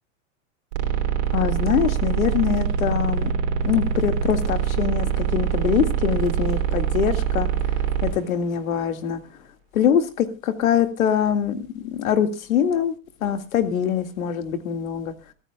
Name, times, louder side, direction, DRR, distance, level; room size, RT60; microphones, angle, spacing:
sound 1, 0.7-8.1, right 8 dB, 55° right, 3.1 m, -24 dB
voice 1, 1.3-3.3 3.6-9.2 9.7-13.0 13.2-15.1, left 8 dB, 85° left, 8 dB, 2.1 m, -23 dB
23.5 x 14.0 x 2.3 m, 0.31 s
supercardioid pair, 150°, 40 cm